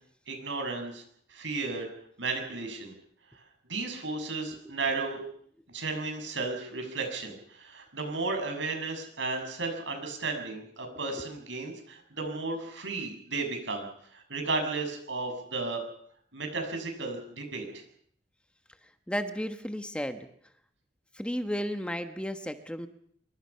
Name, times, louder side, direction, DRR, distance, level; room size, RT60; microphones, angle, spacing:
voice 1, 0.3-1.0 1.3-1.9 2.2-2.9 3.7-5.2 5.7-13.9 14.1-15.8 16.3-17.8, right 3 dB, 90° right, 4 dB, 7.4 m, -34 dB
voice 2, 10.9-11.3 18.8-20.3 21.1-22.9, equal, 5° left, 8 dB, 1.3 m, -34 dB
26.5 x 24.0 x 5.8 m, 0.64 s
head